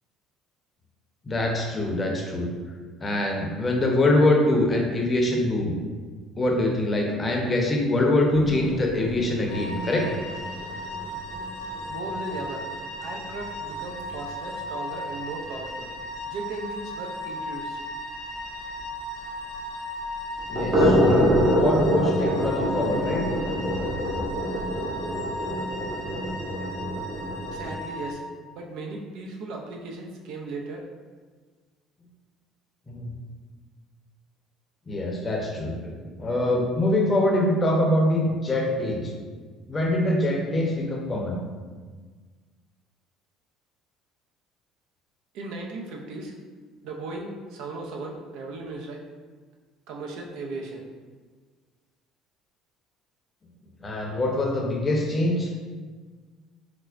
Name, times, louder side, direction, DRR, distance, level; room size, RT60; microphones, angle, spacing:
voice 1, 1.2-2.5 3.0-5.7 6.4-10.1 20.5-23.2 32.9-33.1 34.9-39.0 39.7-41.4 53.8-55.5, left 1 dB, 25° left, 0 dB, 0.6 m, -24 dB
sound 1, 8.3-14.2 14.5-14.6 15.0-15.1 15.4-15.5 15.9-16.0 18.8-18.9 20.3-27.7, equal, 55° right, 1.3 m, -26 dB
sound 2, 9.5-28.1, left 1 dB, 75° left, 0.6 m, -36 dB
voice 2, 11.9-12.7 13.0-15.9 16.2-17.8 27.5-28.2 28.5-30.8 45.3-46.3 46.8-49.0 49.9-50.8, right 3 dB, 75° right, 1 dB, 0.5 m, -36 dB
sound 3, 23.2-26.2, right 1 dB, 25° right, 0.6 m, -42 dB
4.3 x 2.1 x 2.4 m, 1.5 s
supercardioid pair, 90°, 0 cm